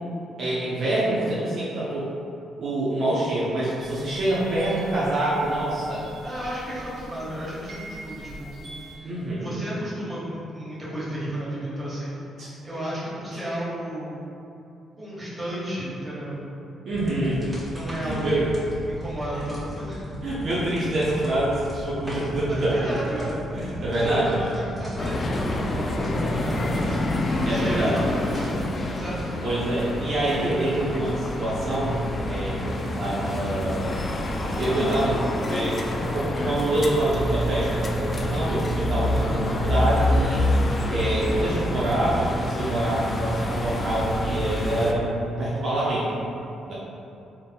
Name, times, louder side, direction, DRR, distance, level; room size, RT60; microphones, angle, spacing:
voice 1, 0.4-2.1 2.6-6.0 9.0-9.5 12.4-12.5 16.8-17.6 18.0-18.5 20.2-22.9 23.5-24.4 27.4-28.0 29.4-34.0 34.6-35.8 36.1-40.4 40.9-46.1 46.6-46.7, right 1 dB, 60° right, -9 dB, 0.7 m, -26 dB
sound 1, 3.8-8.9, right 1 dB, 80° right, 1.0 m, -42 dB
voice 2, 6.2-8.6 8.9-14.1 15.0-16.5 17.7-18.4 18.9-20.2 22.5-23.4 23.9-28.5 28.9-29.4 39.1-39.3, equal, 20° right, -9 dB, 1.4 m, -33 dB
sound 2, 16.9-29.2, equal, 5° right, 1.5 m, -37 dB
sound 3, 25.0-44.9, left 1 dB, 35° left, 0.3 m, -27 dB
4.0 x 3.5 x 2.2 m, 2.7 s
cardioid pair, 90°, 0 cm